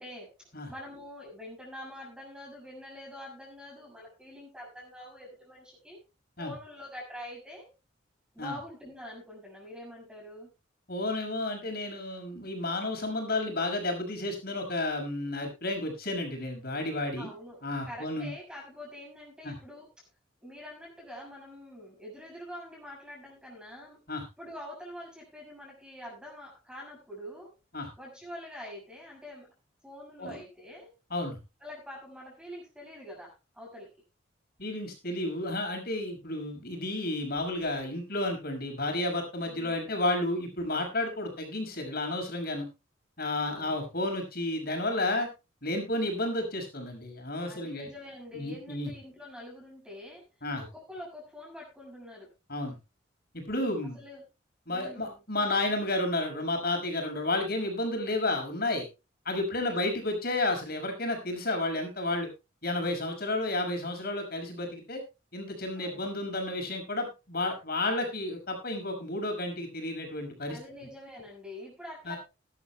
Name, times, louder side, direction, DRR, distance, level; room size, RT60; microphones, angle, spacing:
voice 1, 0.0-6.0 6.4-7.7 8.3-10.5 17.1-19.9 20.4-24.0 24.4-27.5 28.0-29.5 29.8-30.9 31.6-33.9 39.4-40.0 43.4-43.8 47.5-50.2 50.6-52.3 53.9-54.2 54.7-55.2 59.5-59.8 65.8-66.1 70.5-72.2, left 1 dB, 5° right, -2 dB, 6.9 m, -45 dB
voice 2, 10.9-17.3 17.6-18.3 19.4-19.5 24.1-24.2 27.7-27.9 30.2-30.4 31.1-31.4 34.6-42.7 43.2-45.3 45.6-47.9 48.3-48.9 50.4-50.6 52.5-52.8 53.3-54.0 54.7-58.9 59.2-62.3 62.6-65.0 65.3-70.6 72.1-72.2, left 2 dB, 55° left, 4 dB, 6.2 m, -31 dB
20.0 x 12.0 x 2.2 m, 0.28 s
head